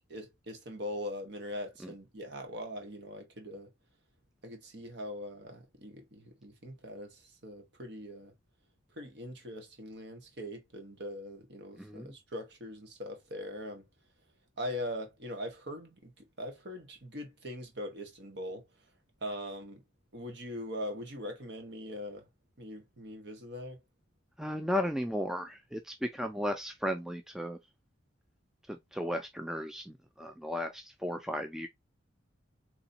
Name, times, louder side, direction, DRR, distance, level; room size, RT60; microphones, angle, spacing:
voice 1, 0.1-3.7 4.4-8.3 8.9-13.8 14.6-18.7 19.2-19.8 20.1-22.3 22.6-23.8, equal, 55° right, 1.2 m, -41 dB
voice 2, 11.8-12.1 24.4-27.6 28.7-31.7, equal, ahead, 0.3 m, -35 dB
4.0 x 3.0 x 2.6 m
head